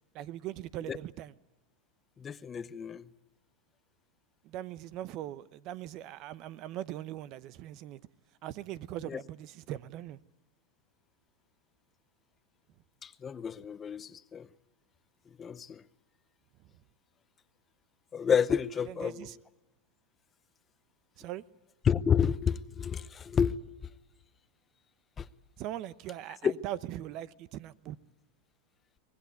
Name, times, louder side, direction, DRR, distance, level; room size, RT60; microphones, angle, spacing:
voice 1, 0.1-1.3 4.4-8.0 8.4-10.2 18.9-19.4 21.2-21.4 25.6-28.0, right 13 dB, 50° right, 0.8 m, -40 dB
voice 2, 2.2-3.1 9.1-9.2 13.0-14.5 15.4-15.8 18.1-19.4 21.8-23.5 25.2-25.3 26.4-26.5, left 7 dB, 25° left, 0.8 m, -30 dB
24.5 x 19.0 x 9.4 m
supercardioid pair, 120°, 0 cm